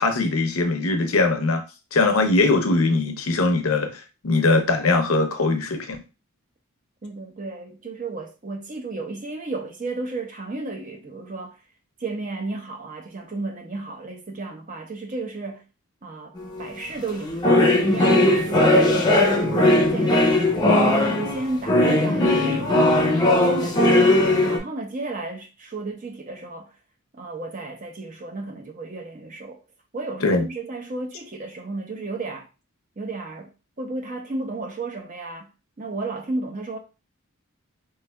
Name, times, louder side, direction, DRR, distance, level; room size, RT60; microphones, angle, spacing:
voice 1, 0.0-1.6 1.9-6.0 30.2-30.4, left 3 dB, 80° left, 0.7 m, -21 dB
voice 2, 7.0-11.6 12.0-15.6 16.0-20.6 20.8-23.0 23.3-26.7 27.2-29.6 29.9-32.5 33.0-33.5 33.8-35.5 35.8-36.8, right 3 dB, 35° right, 0.6 m, -33 dB
sound 1, 16.4-16.7 17.1-24.6, left 1 dB, 20° left, 0.6 m, -18 dB
3.2 x 3.2 x 2.2 m
head